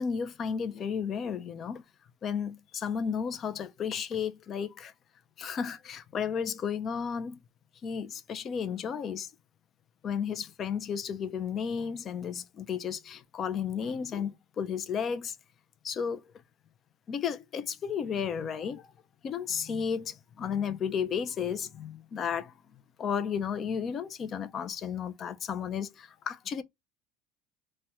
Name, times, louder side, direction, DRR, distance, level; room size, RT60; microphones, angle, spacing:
voice 1, 0.0-1.8 2.2-4.9 5.4-7.4 7.8-9.3 10.0-15.4 15.8-16.2 17.1-18.9 19.2-22.5 23.0-26.6, left 7 dB, 35° left, 0.4 m, -33 dB
2.7 x 2.1 x 3.4 m
cardioid pair, 140°, 0 cm